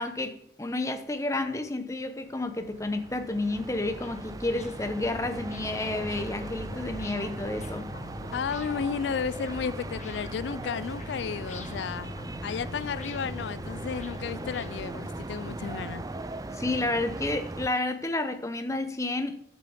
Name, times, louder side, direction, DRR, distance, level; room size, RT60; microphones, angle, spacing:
voice 1, 0.0-7.9 16.5-19.4, left 2 dB, 15° left, 0.8 m, -30 dB
sound 1, 2.2-2.3 2.7-15.1, left 2 dB, 40° left, 1.1 m, -49 dB
sound 2, 2.3-17.7, right 2 dB, 20° right, 0.4 m, -39 dB
sound 3, 4.9-14.9, left 4 dB, ahead, 1.8 m, -46 dB
voice 2, 8.3-12.1 12.4-16.0, left 6 dB, 75° left, 0.4 m, -33 dB
7.1 x 7.0 x 7.1 m
head